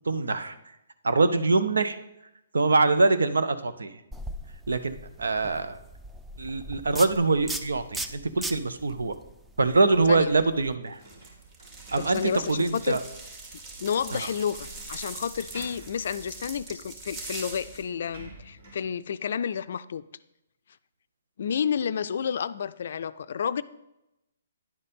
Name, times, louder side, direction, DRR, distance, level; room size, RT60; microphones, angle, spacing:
voice 1, 0.0-0.6 1.0-2.0 2.5-4.0 4.7-5.8 6.4-9.1 9.6-11.0 11.9-13.0 14.1-14.3, right 3 dB, 85° right, 11 dB, 0.7 m, -24 dB
sound 1, 4.1-10.7, right 1 dB, 5° right, 0.4 m, -39 dB
sound 2, 10.0-12.6 13.1-13.2 14.6-15.1 15.3-16.0 17.0-17.1 17.4-18.9, right 3 dB, 65° right, 2.9 m, -50 dB
sound 3, 11.0-17.8, right 3 dB, 35° right, 2.1 m, -42 dB
voice 2, 12.0-13.0 13.8-20.0 21.4-23.6, left 7 dB, 60° left, 14 dB, 0.4 m, -30 dB
10.0 x 4.2 x 5.2 m, 0.89 s
hypercardioid pair, 140°, 0 cm